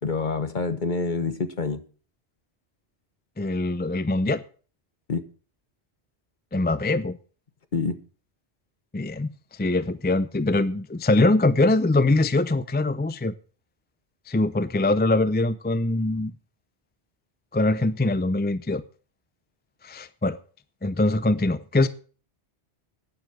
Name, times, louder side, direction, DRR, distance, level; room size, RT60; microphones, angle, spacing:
voice 1, 0.0-1.8 5.1-5.2 7.7-8.0, left 4 dB, 45° left, 1.3 m, -27 dB
voice 2, 3.4-4.4 6.5-7.2 8.9-9.3 9.6-13.3 14.3-16.3 17.5-18.8 19.8-20.4 20.8-21.9, left 2 dB, 15° left, 0.4 m, -23 dB
12.0 x 9.6 x 6.1 m
omnidirectional pair, 1.1 m